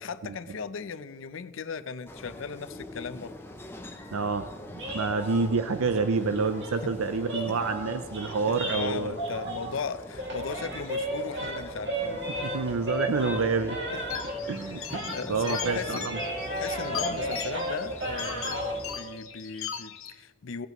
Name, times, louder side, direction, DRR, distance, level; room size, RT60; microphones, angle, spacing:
voice 1, 0.0-3.3 5.2-5.3 6.8-6.9 7.5-7.6 8.3-12.2 13.9-14.0 14.8-16.1 16.4-20.7, left 5 dB, 70° left, 13 dB, 0.5 m, -37 dB
sound 1, 2.1-19.0, left 1 dB, 10° left, 0.7 m, -44 dB
voice 2, 4.1-9.1 12.4-13.8 14.5-16.2, right 4 dB, 90° right, 9 dB, 0.5 m, -28 dB
sound 2, 4.7-9.9 10.1-14.6 14.9-18.8, right 1 dB, 55° right, 2.2 m, -34 dB
sound 3, 14.1-20.1, left 8 dB, 85° left, 1.1 m, -39 dB
18.0 x 8.1 x 3.0 m, 1.4 s
head